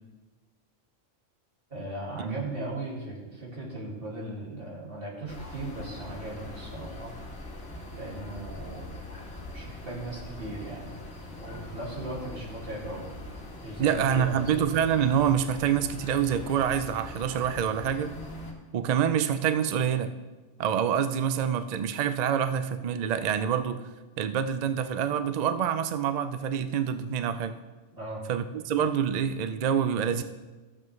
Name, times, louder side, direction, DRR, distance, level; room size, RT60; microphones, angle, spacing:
voice 1, 1.7-7.1 7.9-8.9 9.5-10.9 11.3-13.1 13.6-14.4 28.0-28.2, right 1 dB, 50° right, -4 dB, 2.5 m, -38 dB
sound 1, 5.3-18.5, left 2 dB, 55° left, 1.6 m, -42 dB
voice 2, 13.8-18.2 18.7-20.1 20.6-23.9 24.2-27.6 28.3-30.2, right 8 dB, 65° right, 10 dB, 0.4 m, -26 dB
14.5 x 7.4 x 3.2 m, 1.2 s
omnidirectional pair, 1.2 m